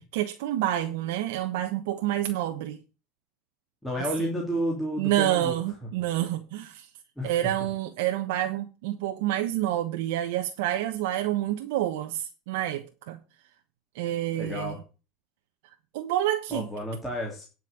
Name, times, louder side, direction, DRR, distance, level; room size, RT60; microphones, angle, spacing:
voice 1, 0.1-2.8 4.0-4.1 5.0-6.9 7.2-13.2 13.9-14.8 15.6-16.7, right 13 dB, 75° right, 1.2 m, -28 dB
voice 2, 3.8-5.5 7.2-7.3 14.3-14.8 16.5-17.4, equal, 5° left, 2.7 m, -31 dB
10.5 x 5.6 x 7.3 m
supercardioid pair, 160°, 0 cm